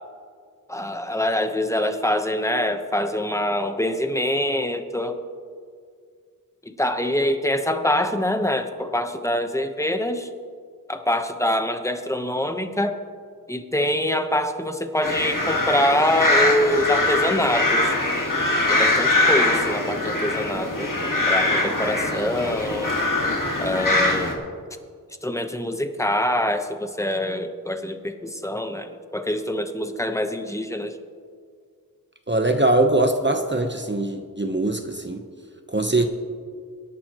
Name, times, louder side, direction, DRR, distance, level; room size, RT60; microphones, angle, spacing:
voice 1, 0.7-5.2 6.6-10.3 10.9-13.0 13.5-17.9 18.7-20.9 21.3-22.9 23.6-24.4 25.2-31.0, left 1 dB, 10° left, 7 dB, 1.1 m, -24 dB
sound 1, 15.0-24.3, left 2 dB, 60° left, 2.2 m, -22 dB
voice 2, 32.3-35.2 35.7-36.0, right 2 dB, 30° right, 5 dB, 1.0 m, -22 dB
25.0 x 11.5 x 3.1 m, 2.1 s
wide cardioid pair, 45°, 36 cm